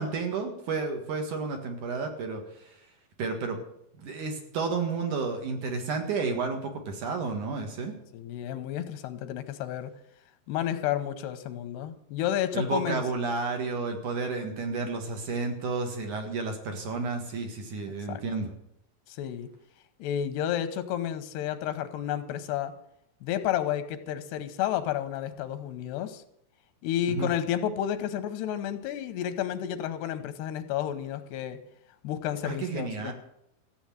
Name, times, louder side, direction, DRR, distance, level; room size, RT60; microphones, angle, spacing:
voice 1, 0.0-2.8 3.2-3.6 4.0-8.0 12.5-18.5 27.1-27.3 32.4-33.1, right 4 dB, 55° right, 3 dB, 2.8 m, -31 dB
voice 2, 8.1-9.9 10.5-13.0 17.9-18.2 19.1-19.5 20.0-22.7 23.2-26.2 26.8-31.6 32.0-33.1, left 10 dB, 90° left, 10 dB, 3.1 m, -31 dB
14.5 x 7.9 x 9.0 m, 0.75 s
omnidirectional pair, 4.7 m